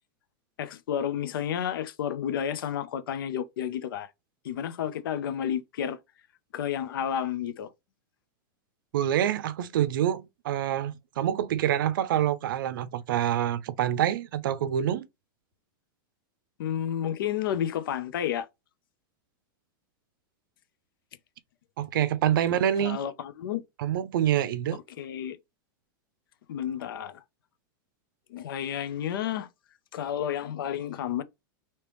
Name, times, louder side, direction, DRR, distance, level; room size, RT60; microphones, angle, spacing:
voice 1, 0.6-4.1 4.4-6.0 6.5-7.7 16.6-18.5 22.8-23.6 25.0-25.4 26.5-27.2 28.3-29.5 29.9-31.2, left 9 dB, 85° left, 0.5 m, -31 dB
voice 2, 8.9-15.1 21.8-23.0 23.8-24.8, right 10 dB, 75° right, 0.5 m, -26 dB
3.0 x 2.9 x 3.3 m
supercardioid pair, 175°, 11 cm